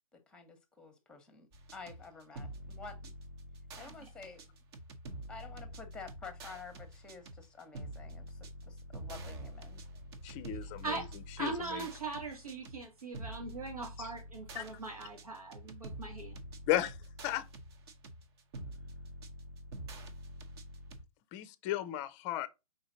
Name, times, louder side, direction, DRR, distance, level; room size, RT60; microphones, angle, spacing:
voice 1, 0.1-3.1 3.8-4.6 5.3-9.8, left 4 dB, 5° left, 1.0 m, -50 dB
sound 1, 1.5-21.0, right 1 dB, 45° right, 1.0 m, -47 dB
voice 2, 10.2-11.9 14.0-14.1 14.5-14.6 16.7-17.0 17.2-17.5 21.3-22.5, left 13 dB, 25° left, 0.5 m, -35 dB
voice 3, 11.4-16.3, right 3 dB, 85° right, 1.5 m, -40 dB
4.9 x 4.0 x 2.7 m
figure-of-eight pair, 125°, 18 cm